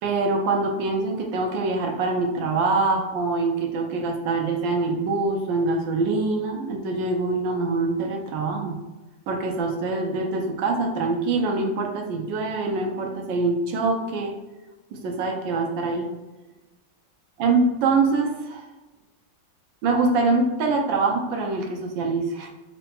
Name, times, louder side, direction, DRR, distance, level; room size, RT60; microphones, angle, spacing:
voice 1, 0.0-8.8 9.3-14.3 14.9-16.1 17.4-18.6 19.8-22.5, right 3 dB, 85° right, 2 dB, 1.4 m, -24 dB
3.8 x 2.1 x 4.4 m, 1.1 s
omnidirectional pair, 2.1 m